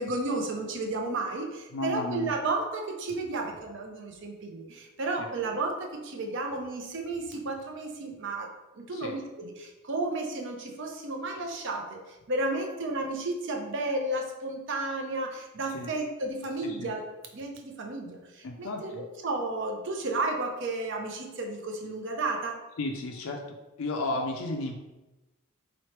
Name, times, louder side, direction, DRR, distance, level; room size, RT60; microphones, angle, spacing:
voice 1, 0.0-8.5 8.8-12.0 12.3-17.1 17.3-22.6, right 2 dB, 55° right, 2 dB, 0.6 m, -32 dB
voice 2, 1.7-2.3 5.2-5.3 8.9-9.1 15.7-15.9 16.6-16.9 18.4-19.1 22.8-23.4 23.8-24.7, left 2 dB, 70° left, 2 dB, 0.4 m, -33 dB
4.0 x 3.0 x 3.2 m, 1.1 s
head